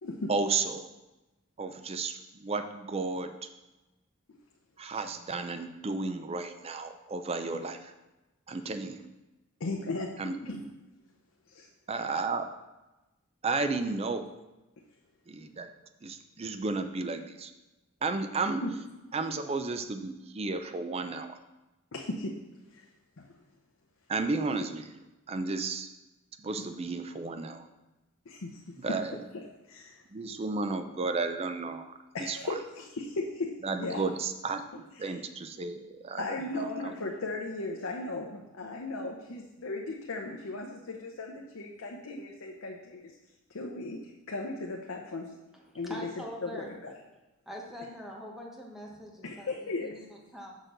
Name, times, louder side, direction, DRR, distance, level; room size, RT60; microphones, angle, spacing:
voice 1, 0.3-0.9 1.6-3.5 4.8-7.9 8.5-9.0 10.2-10.4 11.9-12.6 13.4-14.3 15.3-15.7 16.0-17.5 18.0-18.6 19.1-21.4 24.1-25.9 26.4-27.7 28.8-29.2 30.1-31.9 32.2-32.4 33.6-36.9, right 3 dB, 30° right, 8 dB, 0.4 m, -33 dB
voice 2, 9.6-10.7 11.5-11.7 18.6-18.7 21.9-22.3 22.7-22.9 23.2-23.3 28.3-28.5 29.7-30.0 32.1-34.0 35.0-35.2 36.2-43.2 43.5-45.3 45.7-46.1 46.4-46.9 49.2-50.0, left 2 dB, 75° left, 0 dB, 0.7 m, -36 dB
voice 3, 45.5-46.7 47.5-49.5 49.8-50.6, equal, ahead, -2 dB, 1.0 m, -43 dB
6.5 x 6.2 x 3.9 m, 1.0 s
head